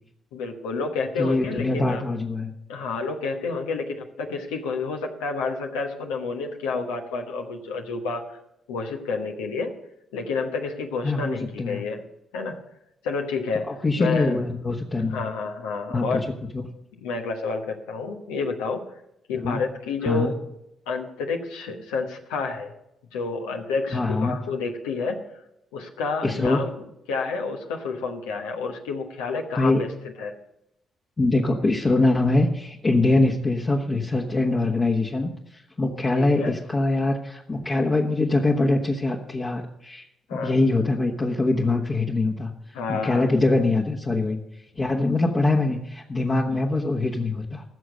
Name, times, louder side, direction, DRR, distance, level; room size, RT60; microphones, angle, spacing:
voice 1, 0.3-2.0 2.7-8.4 8.7-9.7 10.1-12.0 12.3-12.6 13.0-13.7 14.0-14.4 15.1-16.2 17.0-18.8 19.3-20.4 20.9-22.7 23.1-25.2 25.7-26.8 27.1-29.9 30.2-30.3 36.1-36.6 40.3-40.6 42.7-43.3, left 4 dB, 85° left, 3 dB, 1.1 m, -29 dB
voice 2, 1.2-2.5 11.0-11.8 13.7-15.2 15.9-16.3 16.5-16.6 19.3-19.6 20.0-20.3 23.9-24.4 26.2-26.7 29.5-29.8 31.2-40.0 40.3-44.4 44.8-47.6, left 2 dB, 35° left, -1 dB, 1.3 m, -23 dB
15.5 x 6.3 x 6.5 m, 0.83 s
hypercardioid pair, 45°, 0 cm